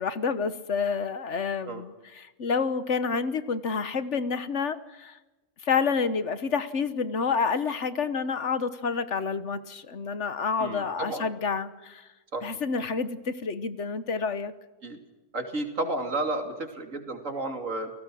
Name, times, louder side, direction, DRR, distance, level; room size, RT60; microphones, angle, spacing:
voice 1, 0.0-5.2 5.6-12.1 12.4-14.5, left 5 dB, 65° left, 12 dB, 1.5 m, -29 dB
voice 2, 10.6-11.3 12.3-12.5 14.8-15.0 15.3-17.9, right 2 dB, 75° right, 5 dB, 3.3 m, -32 dB
29.5 x 18.5 x 6.3 m, 1.1 s
omnidirectional pair, 1.3 m